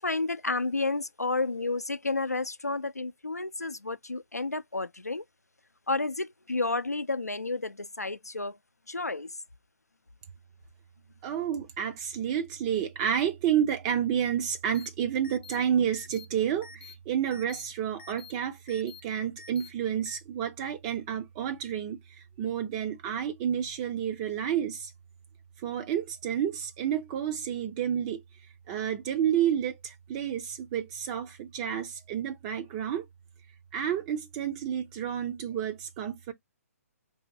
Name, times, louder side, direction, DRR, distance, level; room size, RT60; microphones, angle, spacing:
voice 1, 0.0-5.2 5.9-8.6 8.9-9.3, left 3 dB, 90° left, 0.4 m, -31 dB
voice 2, 11.2-24.9 25.6-28.2 28.7-33.1 33.7-36.3, right 9 dB, 25° right, 0.4 m, -30 dB
sound 1, 14.7-14.9 15.2-15.6 15.9-16.3 16.6-16.9 17.3-17.6 18.0-18.3 18.7-19.0 19.4-19.7 20.1-20.2, left 5 dB, 45° left, 0.6 m, -47 dB
4.3 x 2.7 x 2.6 m
figure-of-eight pair, 130°, 8 cm